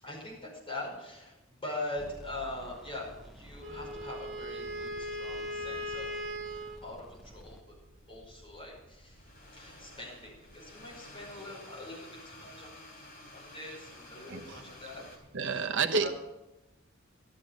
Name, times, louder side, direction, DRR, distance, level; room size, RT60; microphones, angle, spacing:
voice 1, 0.0-7.6 8.1-9.2 9.5-15.0 15.5-15.7 16.0-16.1, left 2 dB, 25° left, -4 dB, 5.3 m, -43 dB
sound 1, 1.9-7.6, equal, ahead, 0.8 m, -52 dB
sound 2, 2.7-15.2, left 1 dB, 45° left, 3.9 m, -54 dB
Wind instrument woodwind instrument, 3.6-6.8, equal, 35° right, 1.7 m, -38 dB
voice 2, 14.3-14.6 15.3-16.1, right 5 dB, 60° right, 7 dB, 1.0 m, -29 dB
12.5 x 12.5 x 5.3 m, 0.99 s
head